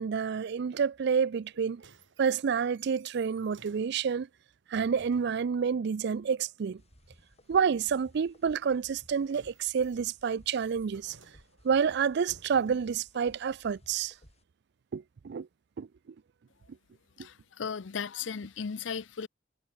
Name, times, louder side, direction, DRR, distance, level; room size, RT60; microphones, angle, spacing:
voice 1, 0.0-1.8 2.2-4.3 4.7-6.8 7.5-11.2 11.6-14.1 14.9-15.5 15.8-15.9, right 6 dB, 60° right, 0.4 m, -29 dB
sound 1, 1.4-5.5 8.8-13.0 13.8-13.9, right 3 dB, 85° right, 5.9 m, -58 dB
sound 2, 6.8-14.4, left 1 dB, 35° left, 4.7 m, -60 dB
voice 2, 17.2-19.3, left 6 dB, 75° left, 0.6 m, -36 dB
head